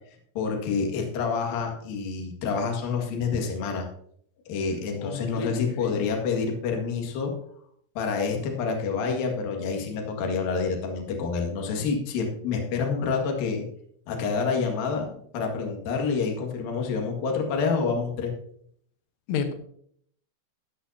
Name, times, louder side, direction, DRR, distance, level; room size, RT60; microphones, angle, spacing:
voice 1, 0.3-3.9 4.5-7.3 7.9-13.6 14.1-15.1 15.3-18.3, left 5 dB, 55° left, 2 dB, 3.1 m, -28 dB
voice 2, 5.0-6.1 19.3-19.5, left 6 dB, 80° left, 7 dB, 3.6 m, -31 dB
13.0 x 11.5 x 2.8 m, 0.65 s
omnidirectional pair, 5.6 m